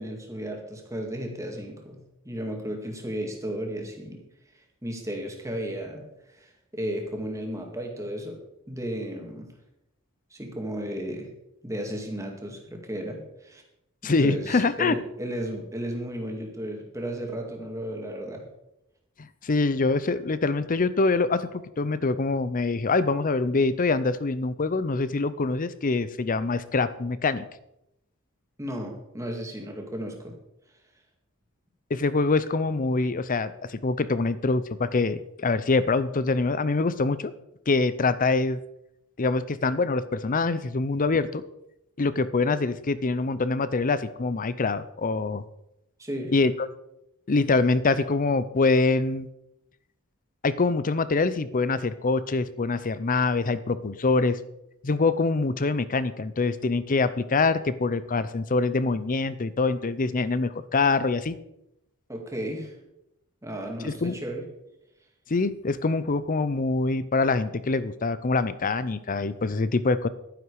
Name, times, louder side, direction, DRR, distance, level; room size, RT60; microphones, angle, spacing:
voice 1, 0.0-4.2 4.8-8.4 8.7-9.5 10.3-11.3 11.6-13.6 14.0-18.4 28.6-30.3 46.0-46.3 62.1-62.7 63.4-64.4, right 1 dB, 15° right, 2 dB, 2.1 m, -34 dB
voice 2, 14.0-15.0 19.2-27.4 31.9-37.3 37.7-38.6 39.2-41.4 42.0-45.4 46.3-46.5 47.3-49.3 50.4-54.4 54.8-61.3 63.8-64.2 65.3-70.1, left 3 dB, 35° left, 15 dB, 0.6 m, -24 dB
11.5 x 10.0 x 4.8 m, 0.84 s
head